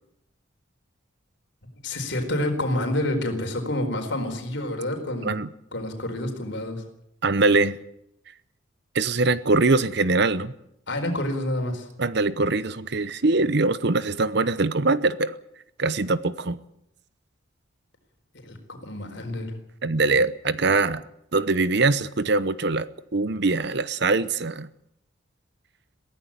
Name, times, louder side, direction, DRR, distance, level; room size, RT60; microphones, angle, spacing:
voice 1, 1.8-5.4 5.7-6.8 10.9-11.9 18.4-18.6 18.8-19.5, left 1 dB, 60° left, 4 dB, 4.4 m, -28 dB
voice 2, 7.2-7.8 8.9-10.5 12.0-15.3 15.8-16.6 19.8-21.0 21.3-24.7, right 3 dB, 55° right, 15 dB, 0.8 m, -22 dB
22.5 x 15.5 x 8.8 m, 0.77 s
head